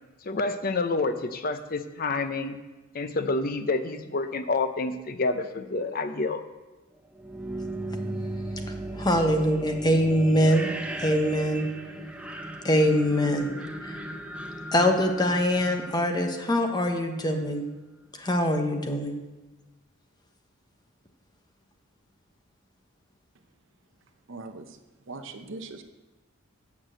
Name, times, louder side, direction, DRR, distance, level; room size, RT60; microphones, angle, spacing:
voice 1, 0.3-2.6 2.9-6.4, left 3 dB, 45° left, 9 dB, 0.6 m, -28 dB
sound 1, 7.1-17.0, right 1 dB, 5° right, 0.6 m, -37 dB
voice 2, 8.9-10.7 11.0-11.6 12.6-13.5 13.8-14.0 14.7-17.6 18.2-19.1, equal, 20° left, 4 dB, 1.0 m, -23 dB
voice 3, 24.3-24.7 25.1-25.8, right 3 dB, 60° right, 7 dB, 0.8 m, -40 dB
8.9 x 6.0 x 7.7 m, 1.1 s
head